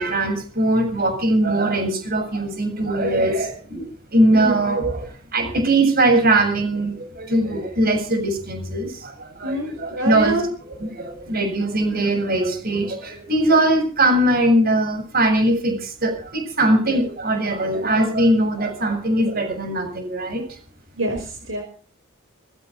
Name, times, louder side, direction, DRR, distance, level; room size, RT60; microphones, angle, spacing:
voice 1, 0.0-5.1 5.3-20.4, right 1 dB, 45° right, 7 dB, 7.2 m, -21 dB
voice 2, 9.4-10.5 21.0-21.6, right 2 dB, 60° right, 3 dB, 5.4 m, -25 dB
21.0 x 16.0 x 4.2 m, 0.42 s
head